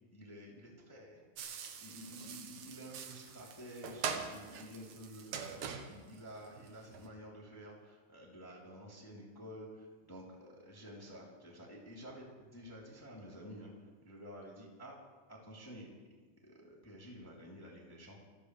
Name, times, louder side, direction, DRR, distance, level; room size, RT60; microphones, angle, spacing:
voice 1, 0.1-1.2 1.6-15.0 15.3-15.9 16.4-18.2, equal, 5° left, -4 dB, 2.3 m, -51 dB
sound 1, 1.4-7.1, right 7 dB, 65° right, 1.9 m, -44 dB
26.0 x 15.5 x 3.3 m, 1.4 s
omnidirectional pair, 4.9 m